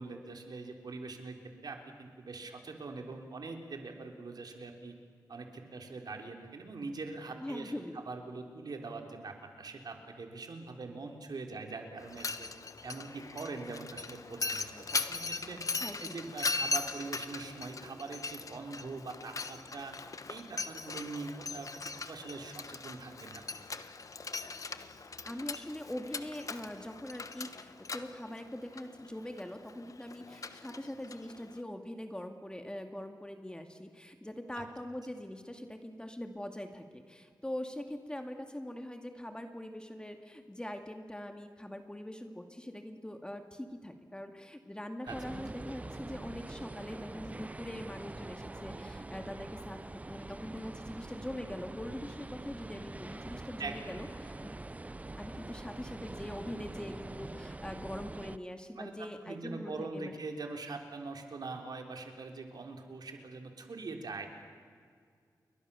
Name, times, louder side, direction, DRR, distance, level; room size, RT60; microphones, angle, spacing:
voice 1, 0.0-1.4 1.6-4.9 5.3-7.7 8.0-12.5 12.8-15.6 16.0-19.9 20.3-21.7 22.1-23.4 34.5-34.7 45.0-45.2 53.6-54.1 58.7-64.3, right 3 dB, 65° right, 4 dB, 3.5 m, -43 dB
voice 2, 7.4-8.0 15.8-16.3 25.2-54.5 55.2-60.1, left 1 dB, 10° left, 6 dB, 2.1 m, -43 dB
Mechanisms, 12.0-31.6, left 4 dB, 50° left, 1.2 m, -40 dB
sound 1, 45.1-58.4, right 2 dB, 20° right, 0.6 m, -44 dB
29.5 x 22.5 x 7.0 m, 2.1 s
cardioid pair, 75°, 7 cm